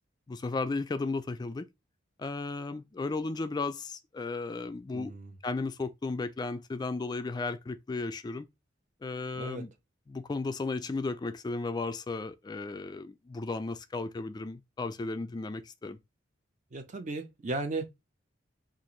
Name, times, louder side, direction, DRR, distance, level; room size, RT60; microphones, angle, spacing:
voice 1, 0.3-1.7 2.2-5.1 5.4-8.5 9.0-9.7 10.1-16.0, left 3 dB, 20° left, 0.3 m, -34 dB
voice 2, 4.9-5.3 9.3-9.7 16.7-17.8, right 2 dB, 40° right, 0.6 m, -36 dB
3.6 x 2.5 x 3.0 m
head